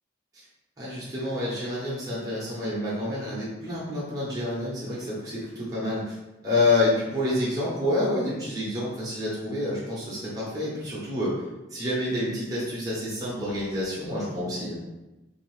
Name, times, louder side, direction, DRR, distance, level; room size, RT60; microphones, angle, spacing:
voice 1, 0.8-6.2 6.4-11.3 11.7-14.8, left 2 dB, 20° right, -8 dB, 0.8 m, -28 dB
2.7 x 2.5 x 3.1 m, 1.0 s
head